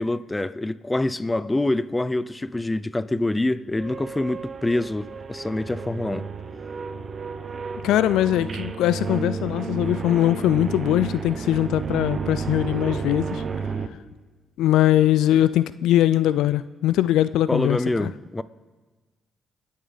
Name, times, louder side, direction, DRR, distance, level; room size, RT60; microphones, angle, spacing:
voice 1, 0.0-6.3 17.5-18.4, left 2 dB, 15° left, 0.5 m, -26 dB
sound 1, 3.8-13.9, right 5 dB, 40° right, 0.8 m, -32 dB
voice 2, 7.8-13.4 14.6-18.1, left 13 dB, 85° left, 0.3 m, -21 dB
27.0 x 9.6 x 4.0 m
cardioid pair, 90°, 0 cm